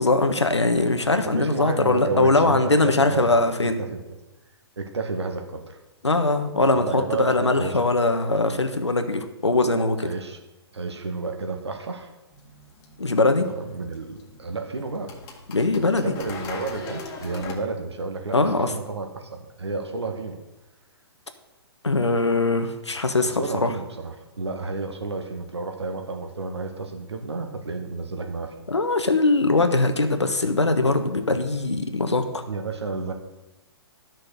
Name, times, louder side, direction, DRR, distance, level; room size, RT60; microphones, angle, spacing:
voice 1, 0.0-3.8 6.0-10.1 13.0-13.5 15.5-16.1 18.3-18.7 21.8-23.7 28.7-32.2, left 2 dB, 85° left, 7 dB, 1.3 m, -21 dB
voice 2, 1.3-4.0 4.8-5.8 6.6-7.9 10.0-10.4 10.7-12.1 13.5-15.2 16.0-20.4 23.2-28.5 32.5-33.1, right 3 dB, 75° right, 4 dB, 2.0 m, -31 dB
sound 1, 12.3-17.6, left 3 dB, 25° left, 1.9 m, -41 dB
12.0 x 6.3 x 6.6 m, 1.0 s
figure-of-eight pair, 125°, 14 cm